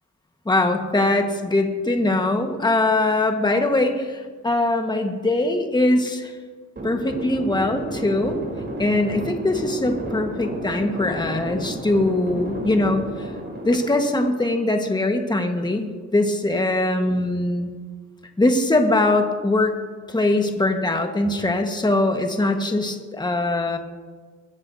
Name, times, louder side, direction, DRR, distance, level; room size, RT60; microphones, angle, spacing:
voice 1, 0.4-6.3 6.8-8.4 8.8-13.3 13.6-15.9 16.1-17.7 18.4-19.8 20.1-23.8, left 2 dB, 15° left, 4 dB, 1.4 m, -21 dB
sound 1, 6.8-15.0, right 1 dB, 35° right, 3.5 m, -32 dB
21.5 x 14.5 x 2.7 m, 1.5 s
cardioid pair, 100°, 30 cm